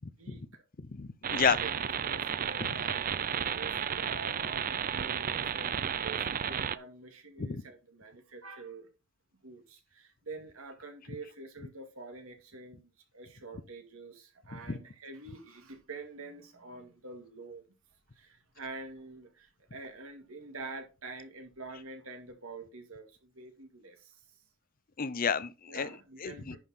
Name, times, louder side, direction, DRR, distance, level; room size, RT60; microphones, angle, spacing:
voice 1, 0.2-0.6 1.6-1.7 2.0-8.9 9.4-17.7 18.2-24.1 25.7-26.6, right 3 dB, 90° right, 2.3 m, -47 dB
voice 2, 0.9-1.6 7.4-7.6 25.0-25.9 26.2-26.6, left 6 dB, 45° left, 0.6 m, -30 dB
sound 1, 1.2-6.8, right 8 dB, 40° right, 0.5 m, -33 dB
10.5 x 5.6 x 4.2 m
head